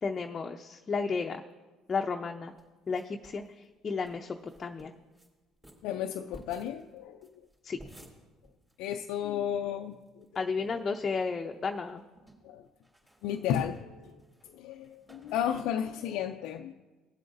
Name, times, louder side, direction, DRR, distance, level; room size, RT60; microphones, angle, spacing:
voice 1, 0.0-1.4 1.9-2.5 2.9-3.4 3.8-4.9 7.6-7.8 10.3-12.0, left 5 dB, 35° left, 3 dB, 0.6 m, -33 dB
sound 1, 2.6-3.5 3.7-3.8 4.0-4.1 4.4-5.3 5.6-9.1 9.4-9.5 9.7-10.4 10.8-11.4 11.7-15.6, right 1 dB, 15° right, 3.1 m, -55 dB
voice 2, 5.8-7.2 8.8-10.2 12.4-12.6 13.2-14.2 14.5-16.7, left 9 dB, 80° left, 5 dB, 0.4 m, -33 dB
18.5 x 7.8 x 2.6 m, 1.2 s
supercardioid pair, 80°, 0 cm